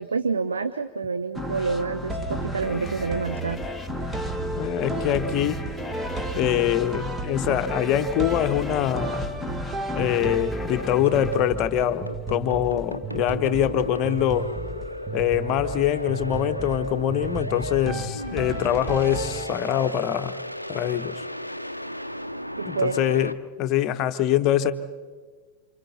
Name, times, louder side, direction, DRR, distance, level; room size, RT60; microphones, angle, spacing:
voice 1, 0.0-3.6 22.6-23.0, right 4 dB, 75° right, 10 dB, 0.7 m, -28 dB
sound 1, 1.4-12.5, left 2 dB, 5° left, 1.1 m, -35 dB
sound 2, 2.1-19.9, right 2 dB, 15° right, 1.5 m, -33 dB
voice 2, 4.5-5.6 6.3-9.2 9.9-14.5 15.1-20.4 20.7-21.2 22.6-23.3 23.6-24.7, left 11 dB, 40° left, 10 dB, 1.1 m, -24 dB
sound 3, 10.8-23.3, equal, 90° left, 0.6 m, -35 dB
29.0 x 27.0 x 4.2 m, 1.5 s
figure-of-eight pair, 90°, 0 cm